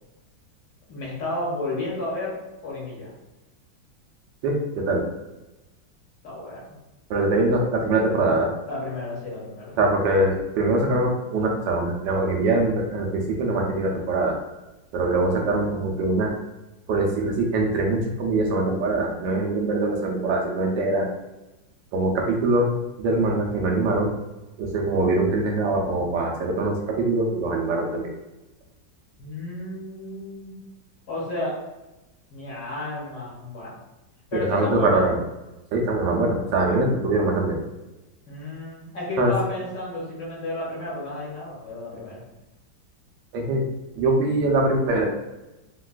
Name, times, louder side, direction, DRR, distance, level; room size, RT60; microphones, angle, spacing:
voice 1, 0.9-3.1 6.2-6.8 8.7-9.8 29.2-30.5 31.1-31.5 32.3-33.8 34.3-35.1 38.3-42.2, left 2 dB, 80° left, -6 dB, 1.9 m, -32 dB
voice 2, 4.4-5.0 7.1-8.5 9.8-14.4 14.9-16.3 16.9-21.1 21.9-22.7 23.0-24.1 24.6-28.1 34.3-35.2 35.7-37.6 39.2-39.3 43.3-43.6 44.0-45.0, right 2 dB, 90° right, 1 dB, 1.3 m, -23 dB
3.9 x 2.2 x 2.3 m, 1.0 s
omnidirectional pair, 2.0 m